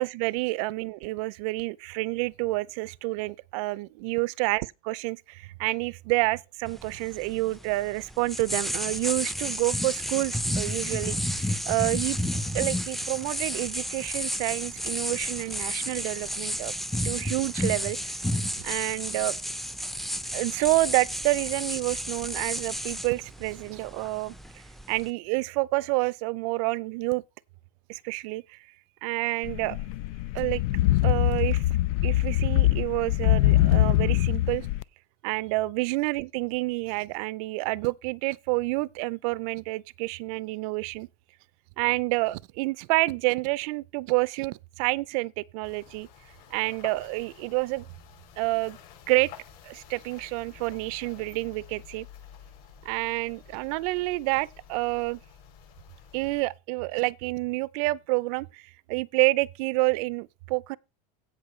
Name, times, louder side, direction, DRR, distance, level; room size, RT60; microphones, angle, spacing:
voice 1, 0.0-12.2 12.5-16.7 17.0-18.1 18.6-19.4 20.3-24.3 24.9-27.2 27.9-28.6 29.0-29.8 30.3-30.6 31.0-31.6 32.0-34.7 35.2-41.1 41.8-46.1 46.5-47.9 48.4-48.8 49.1-49.3 49.6-52.1 52.8-55.2 56.1-60.8, right 22 dB, 70° right, 0.5 m, -28 dB
sound 1, 6.7-25.1, equal, ahead, 0.5 m, -32 dB
sound 2, 29.4-34.8, left 15 dB, 80° left, 0.4 m, -23 dB
sound 3, 45.6-56.4, left 9 dB, 60° left, 6.9 m, -50 dB
16.5 x 6.1 x 3.2 m
cardioid pair, 150°, 19 cm